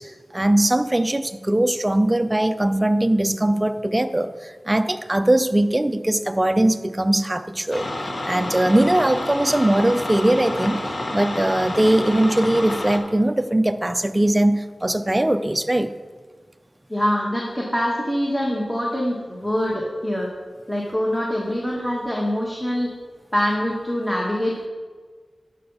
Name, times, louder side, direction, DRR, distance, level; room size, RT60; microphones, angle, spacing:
voice 1, 0.0-7.9 8.2-10.8 11.1-15.9, right 1 dB, 15° right, 10 dB, 0.4 m, -20 dB
sound 1, 7.7-13.0, left 1 dB, 45° left, 1.0 m, -29 dB
voice 2, 16.9-20.3 20.7-22.9 23.3-24.7, equal, 10° left, -3 dB, 1.2 m, -24 dB
9.5 x 6.9 x 4.0 m, 1.5 s
wide cardioid pair, 95°, 0 cm